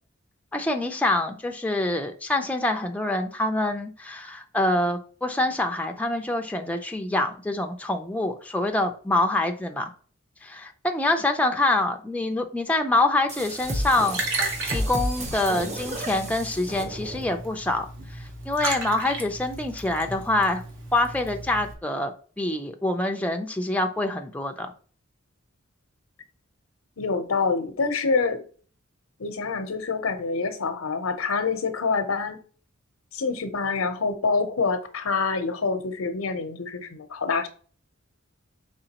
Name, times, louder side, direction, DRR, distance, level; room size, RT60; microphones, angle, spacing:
voice 1, 0.5-9.9 10.4-20.6 20.9-24.7, left 2 dB, 5° left, 0.5 m, -26 dB
sound 1, 13.3-17.4, equal, 35° right, 0.9 m, -32 dB
Liquid, 13.6-21.7, right 2 dB, 65° right, 1.3 m, -35 dB
voice 2, 27.0-28.4 29.2-32.4 33.1-37.5, left 4 dB, 85° left, 0.8 m, -26 dB
5.0 x 3.5 x 2.9 m
head